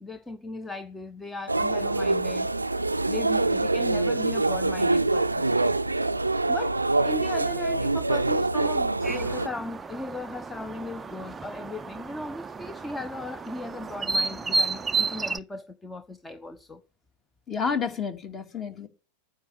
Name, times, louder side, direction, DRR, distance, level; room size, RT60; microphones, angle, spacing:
voice 1, 0.0-2.5 3.0-5.6 6.5-16.8, left 2 dB, 10° left, 1.0 m, -37 dB
sound 1, 1.5-9.5, right 2 dB, 85° right, 0.5 m, -25 dB
sound 2, 9.0-15.4, right 3 dB, 15° right, 0.6 m, -32 dB
voice 2, 17.5-18.9, left 6 dB, 25° left, 2.4 m, -30 dB
9.7 x 7.9 x 8.5 m
figure-of-eight pair, 90°, 0 cm